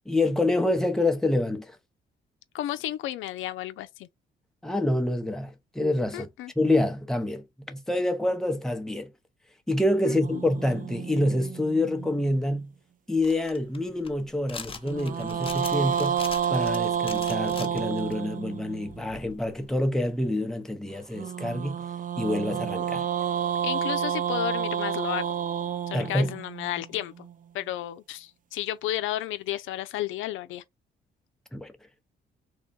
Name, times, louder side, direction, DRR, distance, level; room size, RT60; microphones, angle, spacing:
voice 1, 0.1-1.8 4.6-6.3 6.6-9.1 9.7-12.7 13.1-21.8 22.2-23.1 25.9-26.3 31.5-31.7, left 1 dB, ahead, 0.8 m, -27 dB
voice 2, 2.5-4.1 6.1-6.5 10.0-10.4 23.6-25.2 25.9-27.3 27.5-30.6, left 13 dB, 85° left, 0.5 m, -32 dB
sound 1, 10.2-12.6 14.8-19.0 21.1-27.3, right 8 dB, 45° right, 0.4 m, -30 dB
sound 2, 13.2-18.1 18.9-19.7, left 5 dB, 30° left, 0.8 m, -42 dB
3.5 x 2.2 x 4.0 m
cardioid pair, 90°, 20 cm